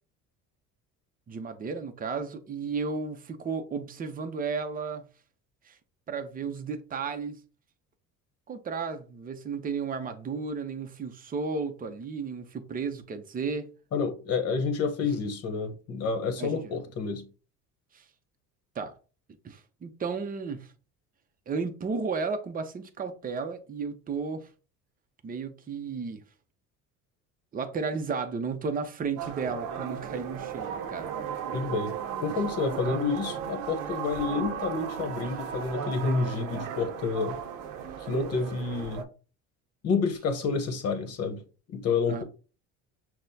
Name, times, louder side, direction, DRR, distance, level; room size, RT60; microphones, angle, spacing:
voice 1, 1.3-5.1 5.7-5.8 6.1-7.4 8.5-13.7 16.4-16.8 17.9-18.1 18.8-19.0 19.4-20.7 21.5-24.5 25.2-26.2 27.5-31.1 35.0-35.3 42.1-42.2, right 5 dB, 25° right, 0.7 m, -33 dB
voice 2, 13.9-17.3 31.5-31.9 32.2-37.4 38.0-39.1 39.8-41.4 41.7-42.2, left 4 dB, 50° left, 1.0 m, -29 dB
sound 1, 29.2-39.0, right 8 dB, 70° right, 0.7 m, -35 dB
6.0 x 2.2 x 2.7 m
cardioid pair, 110°, 32 cm